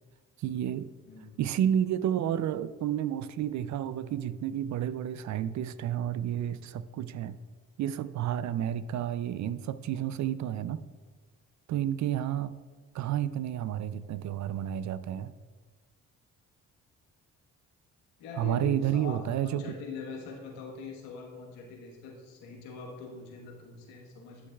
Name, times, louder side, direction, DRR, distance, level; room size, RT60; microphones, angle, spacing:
voice 1, 0.4-0.9 1.4-7.4 7.8-10.8 11.7-12.5 12.9-15.3 18.4-19.8, right 10 dB, 55° right, 15 dB, 0.5 m, -30 dB
voice 2, 18.2-24.5, left 4 dB, 90° left, 0 dB, 1.3 m, -43 dB
11.5 x 6.4 x 2.3 m, 1.4 s
supercardioid pair, 60°, 34 cm